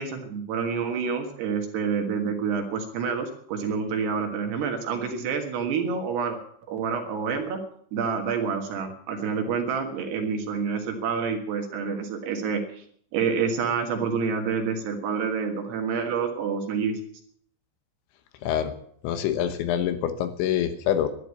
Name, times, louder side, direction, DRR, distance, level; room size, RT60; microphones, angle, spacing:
voice 1, 0.0-6.4 6.7-7.6 7.9-12.6 13.1-17.0, right 6 dB, 65° right, 4 dB, 3.4 m, -28 dB
voice 2, 18.4-18.7 19.0-21.1, left 10 dB, 75° left, 9 dB, 3.3 m, -25 dB
12.0 x 10.5 x 8.2 m, 0.64 s
omnidirectional pair, 5.6 m